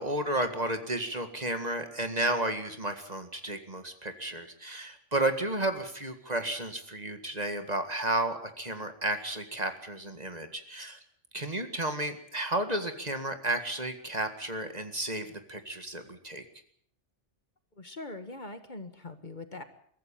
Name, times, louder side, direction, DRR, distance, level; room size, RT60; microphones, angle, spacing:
voice 1, 0.0-11.0 11.3-16.4, right 1 dB, 35° right, 7 dB, 2.0 m, -32 dB
voice 2, 17.8-19.6, left 2 dB, 40° left, 9 dB, 1.7 m, -42 dB
22.5 x 15.0 x 8.6 m, 0.62 s
omnidirectional pair, 1.2 m